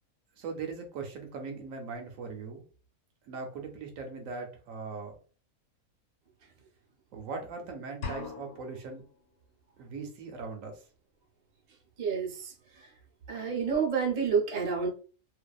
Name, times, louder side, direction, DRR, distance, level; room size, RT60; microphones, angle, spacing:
voice 1, 0.4-2.6 3.2-5.2 7.1-9.1 9.8-10.8, right 4 dB, 70° right, 3 dB, 1.0 m, -40 dB
sound 1, 8.0-9.0, left 5 dB, 85° left, 1.2 m, -39 dB
voice 2, 12.0-12.5 13.3-14.9, right 6 dB, 45° right, -1 dB, 0.5 m, -29 dB
2.6 x 2.3 x 2.2 m, 0.38 s
omnidirectional pair, 1.5 m